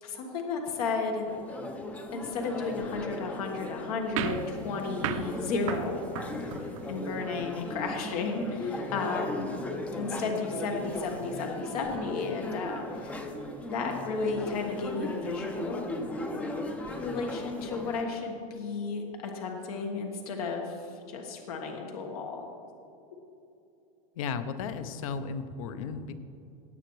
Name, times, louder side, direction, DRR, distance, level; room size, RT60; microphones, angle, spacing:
voice 1, 0.0-1.2 2.1-6.0 6.4-6.6 6.9-9.5 9.9-13.2 13.7-15.9 17.0-19.0 19.3-20.8 21.1-22.4, left 4 dB, 85° left, 2 dB, 1.5 m, -33 dB
sound 1, 1.3-18.0, left 1 dB, 5° left, 0.4 m, -37 dB
sound 2, 4.2-7.0, right 10 dB, 60° right, 0.6 m, -35 dB
voice 2, 24.2-26.1, left 5 dB, 65° left, 10 dB, 0.8 m, -34 dB
17.0 x 9.0 x 3.2 m, 2.6 s
supercardioid pair, 175°, 19 cm